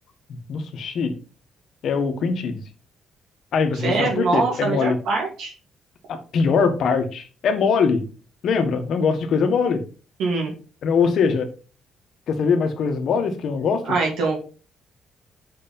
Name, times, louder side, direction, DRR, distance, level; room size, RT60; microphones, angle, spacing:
voice 1, 0.3-1.1 1.8-2.6 3.5-5.0 6.1-8.0 8.4-9.8 10.8-11.5 12.3-13.9, left 5 dB, 70° left, 7 dB, 1.4 m, -22 dB
voice 2, 3.7-5.5 10.2-10.5 13.8-14.4, right 3 dB, 85° right, -1 dB, 2.3 m, -23 dB
6.6 x 4.5 x 5.3 m, 0.35 s
cardioid pair, 90°, 0 cm